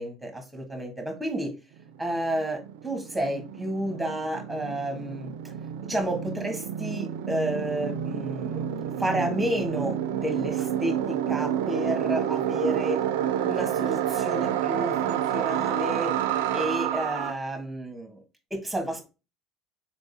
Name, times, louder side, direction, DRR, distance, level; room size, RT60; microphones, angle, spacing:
voice 1, 0.0-1.5 2.0-5.3 5.8-13.0 13.4-16.1 16.5-18.2 18.5-19.1, right 1 dB, 5° right, 5 dB, 1.6 m, -31 dB
sound 1, 1.8-1.9 2.1-17.3, right 10 dB, 80° right, 0.4 m, -29 dB
4.3 x 3.4 x 2.7 m, 0.29 s
hypercardioid pair, 75°, 0 cm